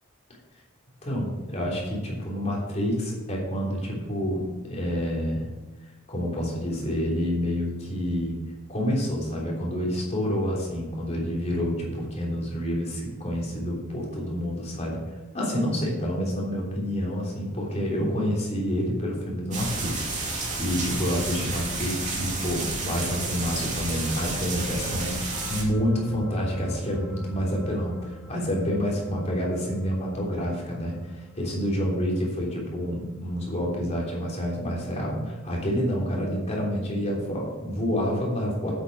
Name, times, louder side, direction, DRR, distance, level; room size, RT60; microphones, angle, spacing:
voice 1, 1.0-5.5 6.1-8.3 8.7-15.0 15.3-38.7, equal, 30° left, -3 dB, 3.3 m, -28 dB
sound 1, 19.5-25.6, right 3 dB, 35° right, 2.5 m, -31 dB
sound 2, 23.8-34.3 34.6-34.8, left 1 dB, 5° right, 1.6 m, -45 dB
8.4 x 8.0 x 6.2 m, 1.1 s
head